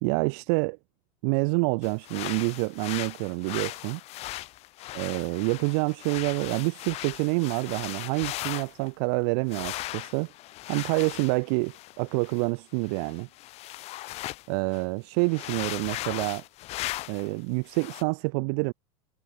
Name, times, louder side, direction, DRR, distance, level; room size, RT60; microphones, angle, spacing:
voice 1, 0.0-0.8 1.2-4.0 4.9-10.3 10.7-13.3 14.5-16.4 17.1-18.7, right 36 dB, 55° right, 0.7 m, -27 dB
sound 1, 1.8-8.9 9.5-14.5 14.7-14.8 15.2-17.3 17.7-18.0, left 17 dB, 40° left, 5.4 m, -38 dB
supercardioid pair, 150°, 16 cm